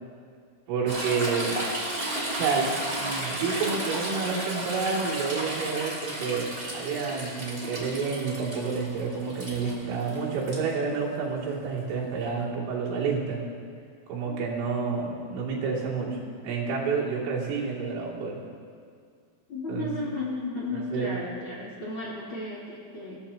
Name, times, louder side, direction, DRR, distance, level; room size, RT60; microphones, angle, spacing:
voice 1, 0.7-1.6 2.3-13.4 14.1-16.2 16.4-18.4 19.7-19.9 20.9-21.2, right 5 dB, 85° right, -4 dB, 5.2 m, -29 dB
Toilet flush / Trickle dribble, 0.9-10.6 12.4-12.5, right 1 dB, 20° right, 2.4 m, -33 dB
voice 2, 19.5-23.2, left 2 dB, 30° left, -6 dB, 3.1 m, -34 dB
27.0 x 17.0 x 2.9 m, 2.1 s
omnidirectional pair, 5.5 m